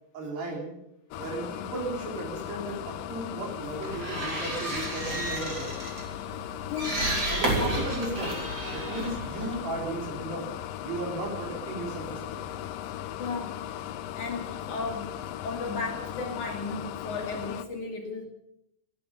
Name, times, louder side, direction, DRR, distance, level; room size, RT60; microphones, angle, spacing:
voice 1, 0.1-0.7 1.2-5.7 7.3-8.4 8.7-10.5 10.8-12.2, right 2 dB, 70° right, 0 dB, 5.9 m, -35 dB
sound 1, 1.1-17.6, left 11 dB, 80° left, 2.0 m, -38 dB
sound 2, 3.6-10.1, right 1 dB, 25° right, 3.4 m, -32 dB
voice 2, 6.7-7.0 7.4-7.9 13.2-13.5 14.1-15.2 15.4-18.3, left 4 dB, 55° left, 2 dB, 2.9 m, -35 dB
18.0 x 11.5 x 7.0 m, 0.79 s
omnidirectional pair, 4.9 m